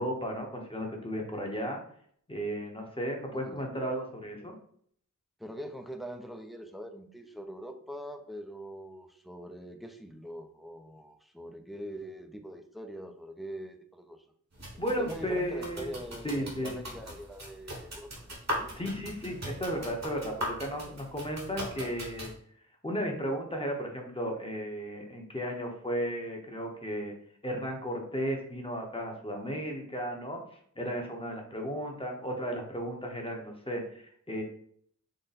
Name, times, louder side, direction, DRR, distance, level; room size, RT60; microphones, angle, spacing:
voice 1, 0.0-1.8 2.3-4.5 14.8-15.9 16.2-16.8 18.7-22.3 22.8-27.1 27.4-30.4 30.8-34.4, equal, 15° left, 1 dB, 0.8 m, -34 dB
voice 2, 3.3-3.7 5.4-14.3 15.0-18.3 18.6-19.0, equal, ahead, 5 dB, 0.4 m, -43 dB
sound 1, 14.5-22.3, equal, 55° right, 1.3 m, -40 dB
3.9 x 2.1 x 4.0 m, 0.62 s
wide cardioid pair, 90°, 32 cm